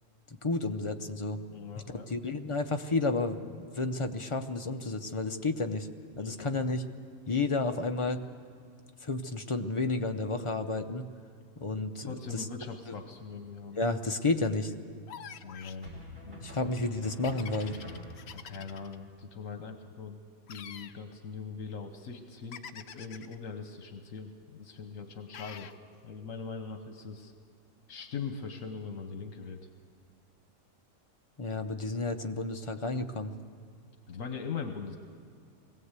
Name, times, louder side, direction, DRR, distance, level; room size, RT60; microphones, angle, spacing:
voice 1, 0.3-1.4 2.1-5.9 6.2-6.8 7.3-8.3 9.0-11.1 11.6-12.1 12.3-12.5 12.9-13.0 13.8-14.7 16.4-17.8 31.4-33.3, left 3 dB, 30° left, 6 dB, 0.6 m, -31 dB
voice 2, 1.5-2.1 6.2-6.5 12.0-13.8 15.4-16.6 18.3-20.2 20.5-25.7 26.0-27.3 27.9-29.7 34.1-35.0, left 5 dB, 75° left, 6 dB, 1.4 m, -41 dB
sound 1, 13.2-13.8 15.8-18.5, left 1 dB, 40° right, 5.8 m, -47 dB
sound 2, 15.1-15.8 17.2-19.0 20.5-21.0 22.5-23.4 25.3-25.8, left 8 dB, 60° left, 0.8 m, -46 dB
21.0 x 16.5 x 8.2 m, 2.1 s
omnidirectional pair, 1.4 m